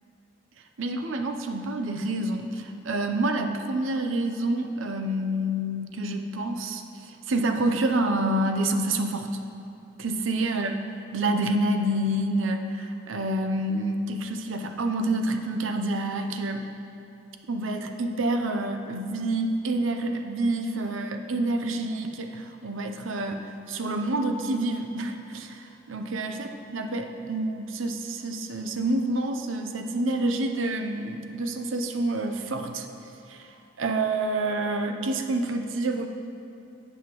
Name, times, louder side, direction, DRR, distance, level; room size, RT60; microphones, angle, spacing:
voice 1, 0.8-9.3 10.0-10.7 11.1-16.7 17.5-32.9 33.3-33.5 33.8-36.1, right 1 dB, 85° right, 5 dB, 0.6 m, -28 dB
17.0 x 5.6 x 3.0 m, 2.6 s
head